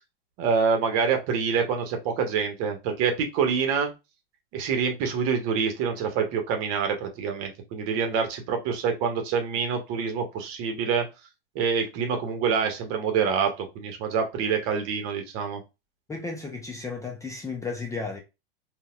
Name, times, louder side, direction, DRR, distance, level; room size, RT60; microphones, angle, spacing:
voice 1, 0.4-3.9 4.5-11.1 11.5-15.6, right 6 dB, 45° right, 1.0 m, -26 dB
voice 2, 16.1-18.2, left 4 dB, 10° left, 0.6 m, -34 dB
4.0 x 2.4 x 2.3 m
hypercardioid pair, 95°, 32 cm